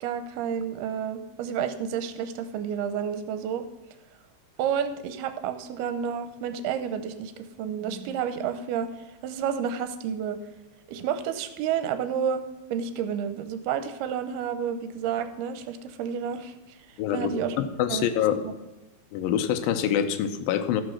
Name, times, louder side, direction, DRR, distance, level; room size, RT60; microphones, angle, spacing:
voice 1, 0.0-3.7 4.6-8.9 9.2-10.4 10.9-12.4 12.7-16.5 17.1-17.6 17.9-18.1 18.4-18.5, right 8 dB, 80° right, 9 dB, 2.7 m, -30 dB
voice 2, 17.0-18.4 19.1-20.8, left 9 dB, 75° left, 8 dB, 2.3 m, -26 dB
13.5 x 5.2 x 6.4 m, 1.0 s
omnidirectional pair, 4.5 m